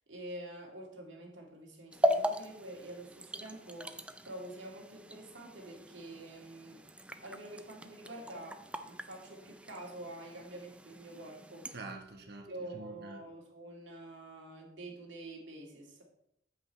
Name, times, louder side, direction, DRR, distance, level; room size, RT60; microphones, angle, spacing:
voice 1, 0.1-6.8 7.2-11.7 12.5-16.0, right 1 dB, 80° right, 0 dB, 2.1 m, -47 dB
sound 1, 1.9-11.8, equal, 5° right, 0.4 m, -38 dB
voice 2, 11.7-13.2, right 2 dB, 60° right, 4 dB, 1.1 m, -46 dB
8.8 x 7.8 x 3.1 m, 0.77 s
head